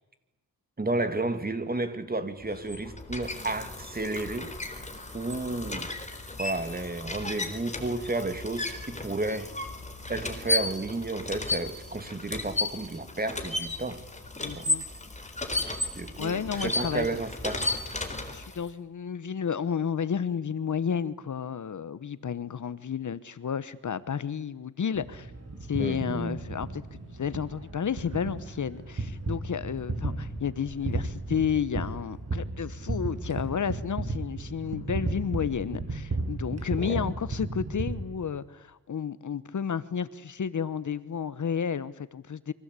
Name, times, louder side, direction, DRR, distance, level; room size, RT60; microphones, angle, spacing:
voice 1, 0.8-4.5 5.1-5.9 6.4-9.5 10.1-14.0 14.4-14.7 15.9-17.8 25.8-26.4 36.8-37.1, right 2 dB, 25° right, 9 dB, 2.6 m, -32 dB
sound 1, 2.4-18.7, left 2 dB, 20° left, 4.0 m, -34 dB
voice 2, 14.4-14.8 16.2-17.2 18.3-25.3 25.7-26.8 27.1-42.5, left 7 dB, 55° left, 15 dB, 1.2 m, -31 dB
sound 2, 25.0-38.0, right 3 dB, 45° right, 8.0 m, -35 dB
29.0 x 24.5 x 8.4 m, 1.0 s
wide cardioid pair, 115°, 37 cm